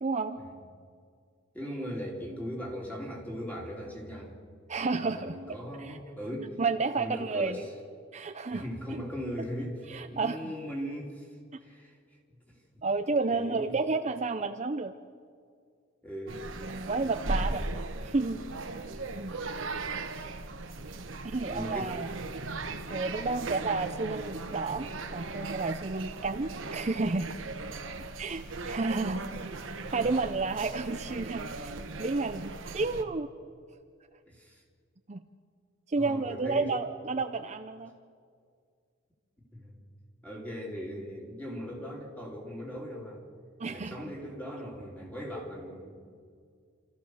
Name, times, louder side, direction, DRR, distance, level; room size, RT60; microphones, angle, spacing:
voice 1, 0.0-0.4 4.7-5.4 5.8-6.0 6.6-7.6 8.1-8.6 9.9-10.5 12.8-14.9 16.6-17.7 18.0-18.4 19.1-19.3 21.3-22.1 22.9-27.3 28.2-29.2 29.9-33.3 35.1-35.2 35.9-37.9 43.6-44.0, right 3 dB, 35° right, 7 dB, 0.6 m, -31 dB
voice 2, 1.5-4.3 4.9-6.6 6.9-7.7 8.5-9.8 10.1-11.3 11.6-12.0 12.5-12.6 13.3-13.8 16.0-16.4 20.1-20.3 21.5-21.9 22.3-22.4 23.3-23.6 28.6-28.7 34.3-34.6 35.9-36.7 39.5-39.8 40.2-43.2 43.6-46.0, equal, 10° left, -1 dB, 3.5 m, -39 dB
sound 1, 16.3-33.0, right 2 dB, 70° right, 1.3 m, -38 dB
27.5 x 14.5 x 6.5 m, 2.1 s
head